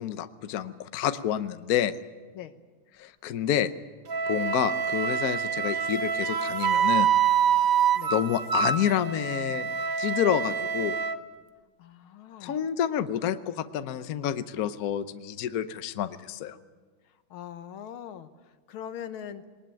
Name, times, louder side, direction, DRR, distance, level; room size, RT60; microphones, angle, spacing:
voice 1, 0.0-2.0 3.0-3.7 4.3-7.1 8.1-11.0 12.4-16.6, left 10 dB, 60° left, 12 dB, 1.1 m, -29 dB
Wind instrument woodwind instrument, 4.1-11.2, right 7 dB, 55° right, 1.1 m, -26 dB
voice 2, 11.8-12.6 17.3-19.5, left 9 dB, 85° left, 11 dB, 1.9 m, -41 dB
20.5 x 19.5 x 9.0 m, 1.3 s
omnidirectional pair, 2.2 m